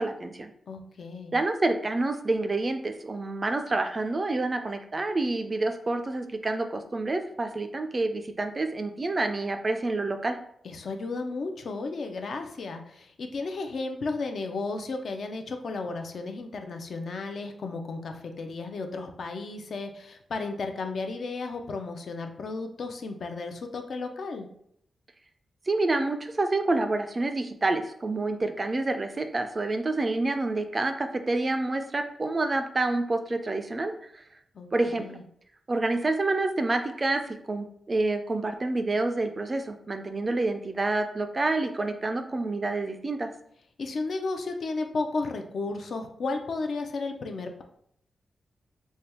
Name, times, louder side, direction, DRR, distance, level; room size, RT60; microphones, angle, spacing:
voice 1, 0.0-0.5 1.3-10.4 25.7-34.2 34.7-35.2 35.7-37.2 37.5-43.3, right 2 dB, 25° right, 6 dB, 0.3 m, -28 dB
voice 2, 0.7-1.4 10.6-24.5 34.5-35.2 43.8-47.6, left 3 dB, 60° left, 5 dB, 0.5 m, -34 dB
3.3 x 2.2 x 4.3 m, 0.69 s
wide cardioid pair, 140°, 0 cm